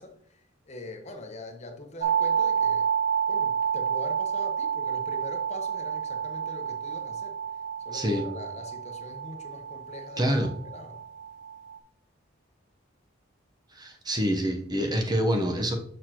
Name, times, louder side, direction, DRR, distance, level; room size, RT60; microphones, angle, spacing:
voice 1, 0.0-2.9 3.3-7.4 7.8-10.3 10.6-11.0, left 2 dB, 35° left, 0.9 m, -43 dB
sound 1, 2.0-11.8, right 8 dB, 40° right, 0.6 m, -30 dB
voice 2, 7.9-8.3 10.2-10.5 13.7-15.8, equal, 20° right, 0.9 m, -26 dB
6.5 x 6.4 x 2.9 m
head